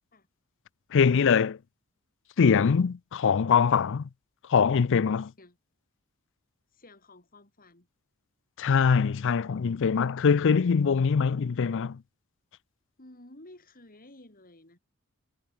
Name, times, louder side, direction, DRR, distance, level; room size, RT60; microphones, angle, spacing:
voice 1, 0.9-1.6 2.4-4.1 4.5-5.3 8.6-12.0, left 6 dB, 60° left, 0.4 m, -23 dB
voice 2, 6.7-7.9 13.0-14.8, left 1 dB, 40° left, 5.0 m, -52 dB
head